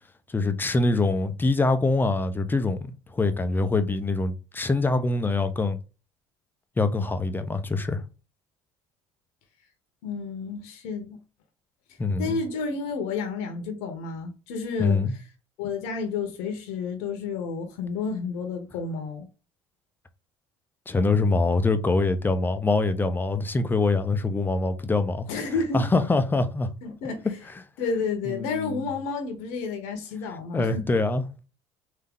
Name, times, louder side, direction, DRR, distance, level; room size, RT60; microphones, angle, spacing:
voice 1, 0.3-5.8 6.8-8.0 12.0-12.4 14.8-15.1 20.9-25.3 25.7-26.7 28.3-28.9 30.5-31.4, left 3 dB, 15° left, 0.6 m, -24 dB
voice 2, 10.0-11.2 12.2-15.0 15.6-19.3 25.3-25.9 26.8-27.3 27.8-30.9, left 4 dB, 80° left, 1.0 m, -31 dB
3.6 x 2.8 x 3.6 m
supercardioid pair, 90°, 12 cm